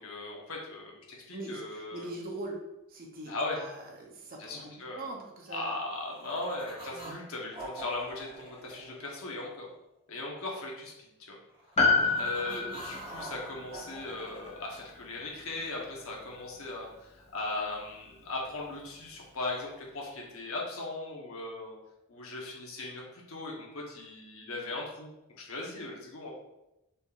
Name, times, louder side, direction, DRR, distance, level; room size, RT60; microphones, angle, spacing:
voice 1, 0.0-2.1 3.3-3.6 4.4-5.0 5.5-9.7 10.1-11.1 12.2-21.7 22.1-26.3, left 2 dB, 75° left, -2 dB, 1.0 m, -38 dB
voice 2, 1.3-2.6 2.9-5.7 6.9-7.2 11.8-12.2 12.5-12.7, right 2 dB, 40° right, 1 dB, 0.6 m, -42 dB
sound 1, 5.6-7.2 7.5-9.7 11.5-14.5, right 1 dB, 25° right, 1.0 m, -46 dB
Piano, 11.8-16.4 16.6-16.7, left 3 dB, 30° left, 0.5 m, -31 dB
4.1 x 3.5 x 2.4 m, 0.92 s
head